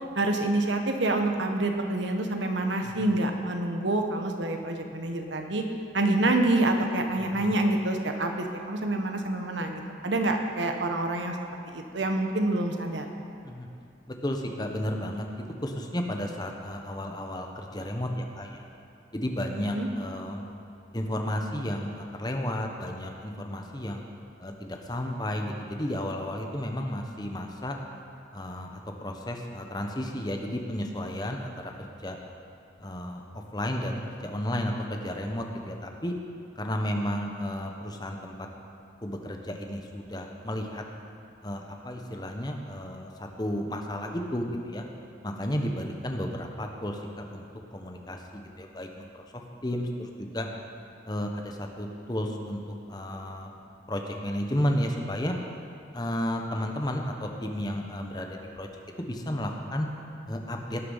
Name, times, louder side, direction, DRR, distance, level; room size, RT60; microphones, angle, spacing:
voice 1, 0.1-5.6 5.9-11.3 11.7-13.1 19.7-19.9, right 2 dB, 80° right, 4 dB, 1.1 m, -27 dB
voice 2, 2.8-3.2 7.3-7.6 13.4-13.7 14.1-18.6 19.1-20.4 20.9-24.0 24.4-27.8 28.3-31.7 32.0-32.2 32.8-36.1 36.6-38.5 39.0-40.8 41.4-44.8 45.2-47.4 47.7-50.5 51.1-52.6 52.9-53.5 53.9-55.4 55.9-58.7 59.0-59.9 60.3-60.8, left 1 dB, 20° left, 2 dB, 0.9 m, -33 dB
18.5 x 6.8 x 5.6 m, 2.5 s
head